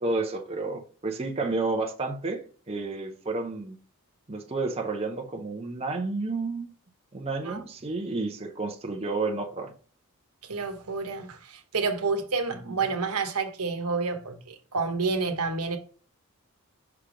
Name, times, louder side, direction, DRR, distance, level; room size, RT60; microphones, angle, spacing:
voice 1, 0.0-3.8 4.3-6.7 7.1-9.7 12.6-12.8, right 3 dB, 25° right, 0.7 m, -31 dB
voice 2, 10.5-15.8, right 4 dB, 80° right, 1.1 m, -29 dB
5.8 x 3.3 x 5.0 m
head